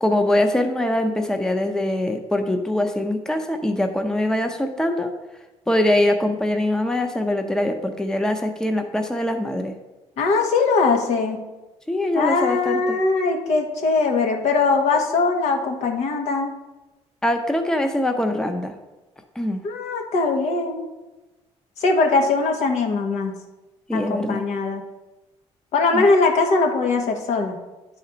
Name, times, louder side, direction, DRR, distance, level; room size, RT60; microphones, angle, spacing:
voice 1, 0.0-5.1 5.7-9.7 11.9-13.0 17.2-18.8 19.4-19.6 23.9-24.4 25.9-26.1, left 1 dB, 5° left, 6 dB, 0.6 m, -23 dB
voice 2, 10.2-11.4 12.1-16.5 19.6-20.9 21.8-23.3 23.9-24.8 25.7-27.5, left 3 dB, 70° left, 3 dB, 1.1 m, -21 dB
10.0 x 4.3 x 3.9 m, 1.1 s
cardioid pair, 95°, 12 cm